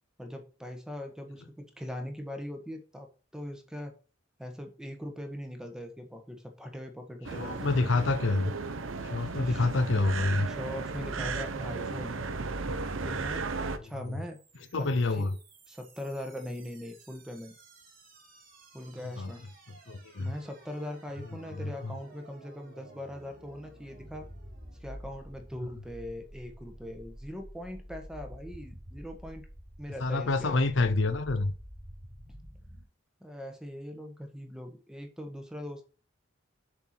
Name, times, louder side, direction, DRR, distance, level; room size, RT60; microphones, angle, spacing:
voice 1, 0.2-3.1 3.3-3.9 4.4-7.8 9.4-9.7 10.4-12.2 13.0-14.4 14.8-14.9 15.2-15.3 15.7-17.5 18.7-19.4 20.2-24.2 24.8-29.4 29.8-30.7 33.2-35.8, left 1 dB, 5° right, 1.4 m, -41 dB
sound 1, 7.2-13.8, right 4 dB, 80° right, 0.9 m, -35 dB
voice 2, 7.3-8.5 9.0-10.5 13.6-13.7 14.0-14.2 14.7-15.3 19.2-19.3 19.9-20.3 21.6-21.9 30.0-31.5, left 3 dB, 65° left, 0.7 m, -27 dB
sound 2, 13.8-32.8, right 1 dB, 45° right, 2.9 m, -50 dB
7.0 x 4.5 x 6.0 m
head